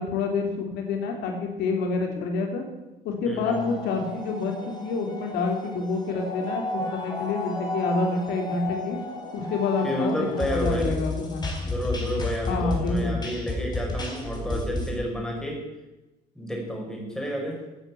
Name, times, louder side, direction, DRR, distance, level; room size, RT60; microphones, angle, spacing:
voice 1, 0.0-2.6 3.0-9.0 9.3-11.6 12.5-13.1, left 4 dB, 85° left, 2 dB, 3.2 m, -28 dB
voice 2, 3.2-3.7 9.8-11.0 11.6-15.6 16.4-17.6, equal, 5° left, -1 dB, 5.4 m, -30 dB
sound 1, 3.5-14.9, left 2 dB, 25° left, 4.4 m, -32 dB
14.0 x 9.0 x 8.7 m, 1.0 s
cardioid pair, 110°, 17 cm